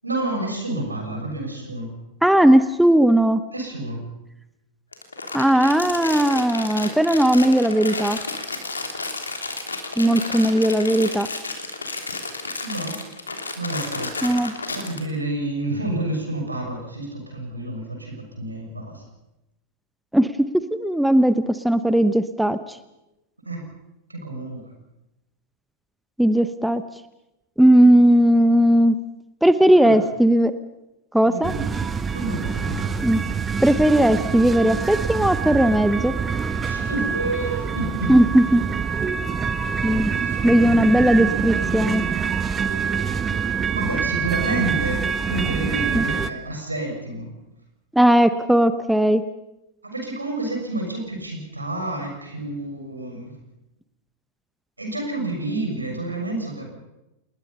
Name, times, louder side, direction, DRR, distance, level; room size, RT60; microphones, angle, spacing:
voice 1, 0.0-1.9 3.5-4.0 10.0-10.3 12.6-13.0 13.5-14.1 14.7-19.0 23.4-23.6 24.1-24.6 29.7-30.0 31.2-31.7 32.1-33.0 36.6-38.1 40.2-40.4 42.5-43.5 43.7-47.3 49.8-53.3 54.8-56.7, right 2 dB, 80° right, 2 dB, 6.8 m, -29 dB
voice 2, 2.2-3.4 5.3-8.2 10.0-11.3 14.2-14.5 20.1-20.5 20.8-22.8 26.2-26.8 27.6-29.0 29.4-30.5 31.1-31.5 33.0-33.2 33.6-36.1 38.1-38.6 39.8-40.1 40.4-42.0 45.9-46.0 47.9-49.2, right 1 dB, ahead, 12 dB, 1.0 m, -17 dB
Crumpling crinkling, 4.9-15.0, left 3 dB, 75° left, 3.1 m, -31 dB
sound 1, 31.4-46.3, right 6 dB, 20° right, 1.2 m, -25 dB
28.5 x 20.5 x 5.6 m, 0.92 s
figure-of-eight pair, 90°, 0 cm